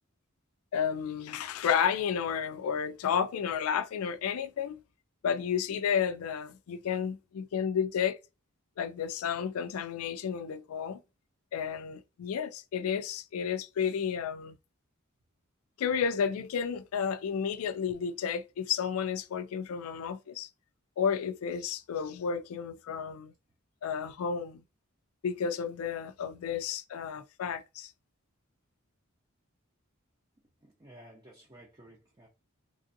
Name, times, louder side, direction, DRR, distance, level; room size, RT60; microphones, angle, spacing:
voice 1, 0.7-4.8 5.2-8.2 8.8-11.0 11.5-14.6 15.8-20.5 21.0-23.3 23.8-24.6 25.2-27.9, left 7 dB, 85° left, 0.3 m, -32 dB
voice 2, 30.6-32.3, right 1 dB, 20° right, 0.7 m, -54 dB
3.3 x 2.5 x 2.5 m
head